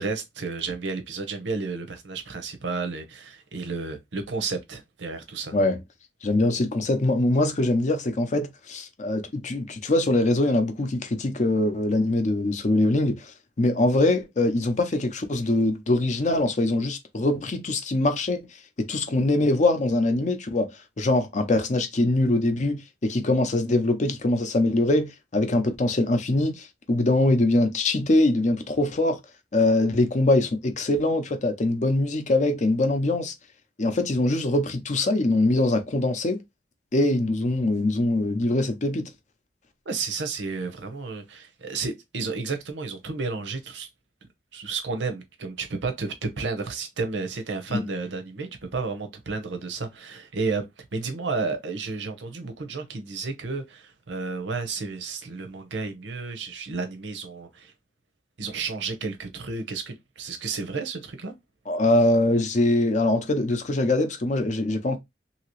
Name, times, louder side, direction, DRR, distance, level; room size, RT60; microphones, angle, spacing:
voice 1, 0.0-5.5 39.9-43.9 44.5-57.7 58.4-61.3, right 4 dB, 75° right, 0.7 m, -32 dB
voice 2, 6.2-18.4 18.8-20.7 21.0-29.2 29.5-33.3 33.8-36.4 36.9-39.1 47.7-47.9 61.7-65.0, left 2 dB, 40° left, 0.6 m, -23 dB
2.9 x 2.8 x 2.9 m
head